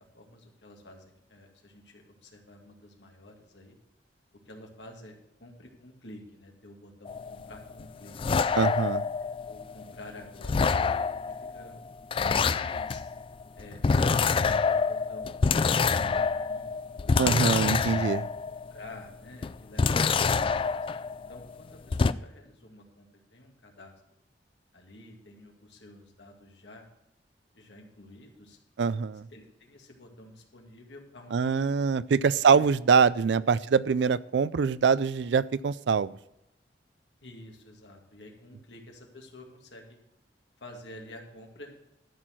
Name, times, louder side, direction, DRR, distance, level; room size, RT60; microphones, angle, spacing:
voice 1, 0.0-3.8 4.3-8.2 9.2-11.8 12.2-13.0 13.5-17.3 18.2-20.9 21.3-23.9 24.7-26.9 27.5-28.6 29.3-31.5 32.2-33.0 33.4-33.5 37.2-40.0 40.6-41.7, left 1 dB, 75° left, 1 dB, 2.3 m, -50 dB
sound 1, 7.0-10.0 10.4-18.9 19.4-21.6 21.9-22.1, left 5 dB, 30° left, 0.3 m, -27 dB
voice 2, 8.6-9.0 17.2-18.3 28.8-29.2 31.3-36.1, right 5 dB, 70° right, 18 dB, 0.4 m, -24 dB
12.5 x 4.6 x 7.5 m, 0.86 s
head